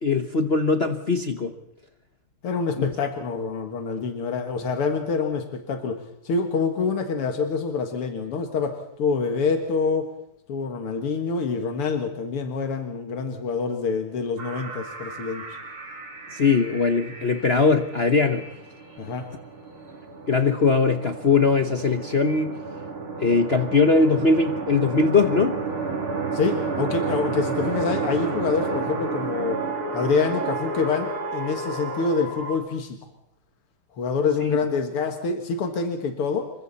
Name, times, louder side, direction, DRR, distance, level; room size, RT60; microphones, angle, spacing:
voice 1, 0.0-1.5 2.8-2.9 16.3-18.5 20.3-22.6 23.2-25.6 34.4-34.6, left 4 dB, 40° left, 7 dB, 1.0 m, -21 dB
voice 2, 2.4-10.1 10.5-15.4 19.0-19.3 26.3-29.6 29.9-33.0 33.9-36.5, left 4 dB, 85° left, 5 dB, 2.7 m, -26 dB
sound 1, 14.4-32.5, right 4 dB, 75° right, 4.0 m, -32 dB
28.0 x 24.0 x 4.2 m, 0.80 s
omnidirectional pair, 2.4 m